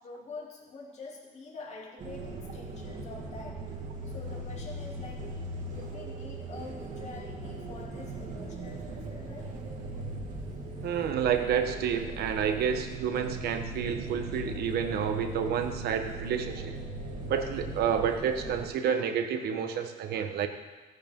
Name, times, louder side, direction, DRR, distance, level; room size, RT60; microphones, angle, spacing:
voice 1, 0.0-3.7 4.1-9.6, left 3 dB, 40° left, -3 dB, 2.9 m, -46 dB
sound 1, 2.0-18.7, right 2 dB, 45° right, 2.0 m, -39 dB
voice 2, 10.8-16.7 17.3-20.5, right 7 dB, 70° right, 7 dB, 1.2 m, -29 dB
15.0 x 9.4 x 3.7 m, 1.3 s
cardioid pair, 110°, 17 cm